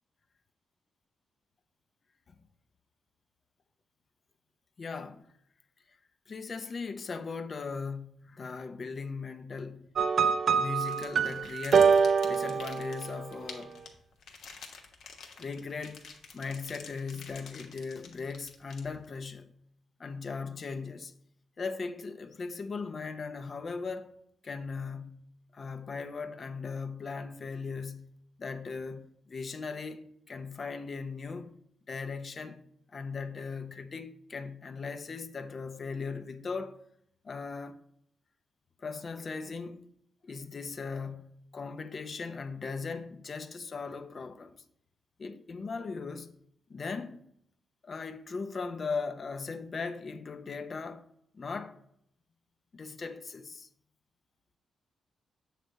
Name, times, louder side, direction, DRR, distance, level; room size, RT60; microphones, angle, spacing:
voice 1, 4.8-5.3 6.3-9.9 10.5-13.8 15.4-16.1 16.3-19.6 20.0-21.1 21.6-24.1 24.4-25.2 25.5-31.6 31.9-32.6 32.9-36.8 37.2-37.8 38.8-39.9 40.2-44.6 45.2-46.3 46.7-47.2 47.8-51.1 51.3-51.8 52.7-53.7, left 4 dB, 40° left, 0.6 m, -38 dB
sound 1, 10.0-13.4, right 6 dB, 55° right, 0.4 m, -25 dB
sound 2, 10.8-19.2, left 5 dB, 75° left, 1.2 m, -49 dB
7.7 x 3.3 x 6.2 m
cardioid pair, 120°, 0 cm